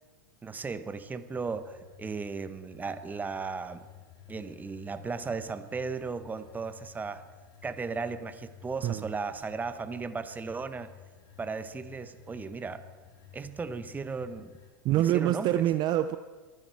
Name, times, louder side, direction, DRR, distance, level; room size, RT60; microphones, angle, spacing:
voice 1, 0.4-3.9 4.3-7.2 7.6-10.9 11.4-12.8 13.3-14.6 14.9-15.6, right 4 dB, 15° right, 12 dB, 1.0 m, -36 dB
sound 1, 1.3-14.7, left 9 dB, 40° left, 4.2 m, -54 dB
voice 2, 14.8-16.2, right 13 dB, 40° right, 12 dB, 0.5 m, -25 dB
25.0 x 9.8 x 4.6 m, 1.3 s
hypercardioid pair, 100°, 12 cm